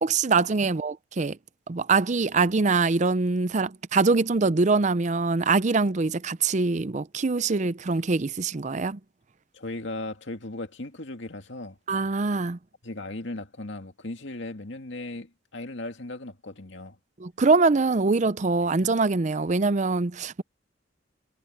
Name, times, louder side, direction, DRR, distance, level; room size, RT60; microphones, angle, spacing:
voice 1, 0.0-1.4 1.7-9.0 11.9-12.6 17.2-20.4, right 3 dB, 40° right, 0.6 m, -23 dB
voice 2, 9.5-11.8 12.8-17.0, left 2 dB, 70° left, 2.2 m, -37 dB
head